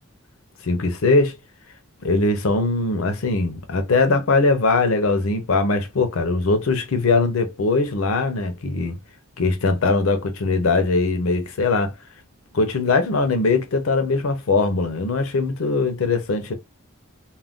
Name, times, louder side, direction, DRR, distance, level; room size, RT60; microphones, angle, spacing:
voice 1, 0.6-1.4 2.0-9.0 9.4-11.9 12.5-16.5, left 3 dB, 85° left, 0.6 m, -21 dB
2.4 x 2.2 x 3.5 m
head